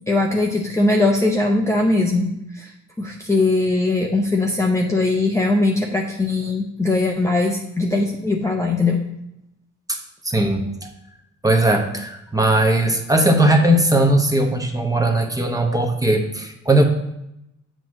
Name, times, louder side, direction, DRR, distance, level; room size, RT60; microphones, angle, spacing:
voice 1, 0.1-2.3 2.5-2.7 3.0-9.0, left 2 dB, 10° left, 0 dB, 0.7 m, -20 dB
voice 2, 9.9-10.9 11.4-16.8, right 1 dB, 10° right, 3 dB, 1.0 m, -18 dB
7.7 x 3.1 x 6.2 m, 0.83 s
cardioid pair, 90°, 30 cm